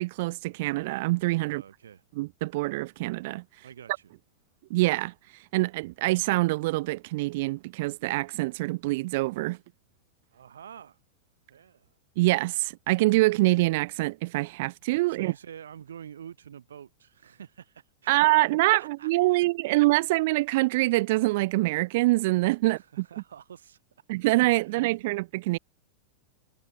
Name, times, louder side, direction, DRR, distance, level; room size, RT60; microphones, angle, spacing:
voice 1, 0.0-1.6 2.2-3.4 4.7-5.1 5.5-9.6 12.2-15.3 18.1-23.0 24.1-25.6, right 21 dB, 50° right, 0.5 m, -25 dB
voice 2, 1.4-2.0 3.6-4.1 10.3-11.0 11.5-11.9 15.1-18.3 18.8-19.8 22.6-23.8 24.6-25.1, right 8 dB, 65° right, 6.4 m, -47 dB
figure-of-eight pair, 90°, 0 cm